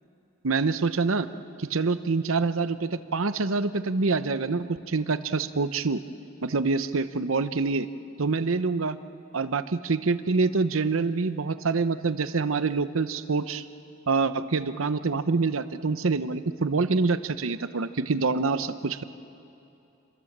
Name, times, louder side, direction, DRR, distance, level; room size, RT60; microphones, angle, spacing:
voice 1, 0.4-1.3 1.6-6.0 6.4-7.9 8.2-9.0 9.3-13.6 14.1-19.0, right 4 dB, 75° right, 12 dB, 0.8 m, -26 dB
28.5 x 22.0 x 7.4 m, 2.7 s
head